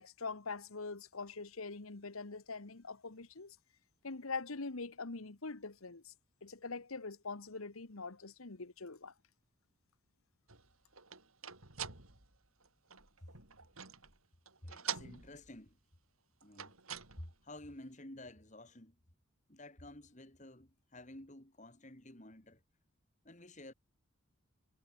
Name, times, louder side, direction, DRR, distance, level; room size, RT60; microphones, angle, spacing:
voice 1, 0.0-3.6 4.0-6.1 6.4-9.1, left 3 dB, 85° left, 1.4 m, -43 dB
sound 1, 10.5-14.2 14.5-15.7 16.4-17.4, right 8 dB, 85° right, 6.4 m, -46 dB
voice 2, 14.6-15.8 16.4-16.8 17.2-19.0 19.5-22.6 23.2-23.7, left 1 dB, 35° left, 2.9 m, -52 dB
head